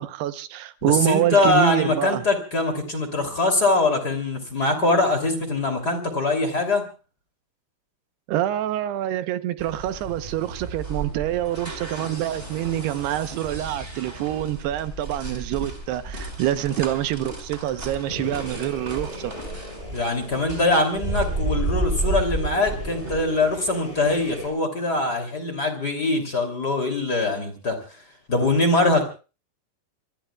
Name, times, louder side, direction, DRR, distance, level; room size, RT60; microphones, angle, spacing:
voice 1, 0.0-2.2 8.3-19.3, right 13 dB, 85° right, 3.0 m, -26 dB
voice 2, 0.9-6.8 19.9-27.8 28.3-29.0, left 2 dB, 25° left, 3.0 m, -22 dB
sound 1, 9.6-23.2, right 2 dB, 15° right, 4.6 m, -32 dB
sound 2, 18.1-24.5, left 1 dB, 10° left, 7.4 m, -39 dB
27.0 x 21.5 x 2.3 m
omnidirectional pair, 4.6 m